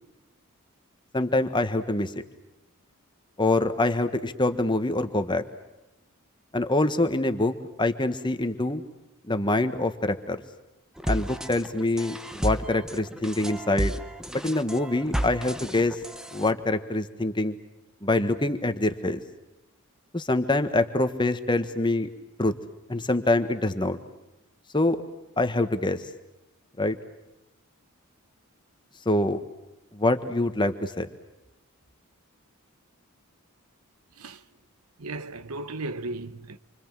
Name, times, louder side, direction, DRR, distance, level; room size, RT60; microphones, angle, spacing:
voice 1, 1.1-2.1 3.4-5.4 6.5-8.8 9.3-10.4 11.1-13.9 14.3-16.0 16.3-17.6 18.0-19.2 20.1-22.1 22.4-22.5 22.9-24.0 24.7-25.0 25.4-26.0 26.8-27.0 29.0-29.4 29.9-31.1, left 2 dB, 20° left, 1.4 m, -25 dB
sound 1, 11.0-16.5, equal, 5° right, 0.9 m, -32 dB
voice 2, 35.0-36.6, right 2 dB, 85° right, 1.1 m, -35 dB
27.5 x 25.5 x 7.6 m
head